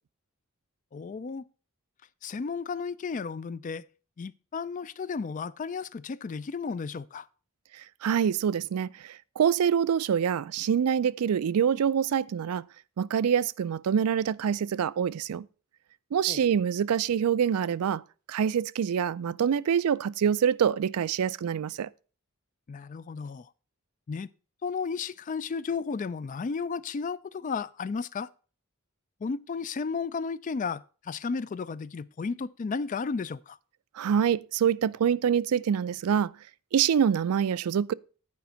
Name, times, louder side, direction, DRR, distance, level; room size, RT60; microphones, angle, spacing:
voice 1, 0.9-1.4 2.2-3.8 4.2-7.3 16.3-16.4 22.7-23.5 24.1-24.3 24.6-28.3 29.2-33.6, left 5 dB, 35° left, 0.3 m, -33 dB
voice 2, 8.0-12.6 13.0-15.4 16.1-18.0 18.3-21.9 34.0-36.3 36.7-37.9, right 8 dB, 85° right, 0.4 m, -25 dB
9.5 x 5.1 x 5.6 m
head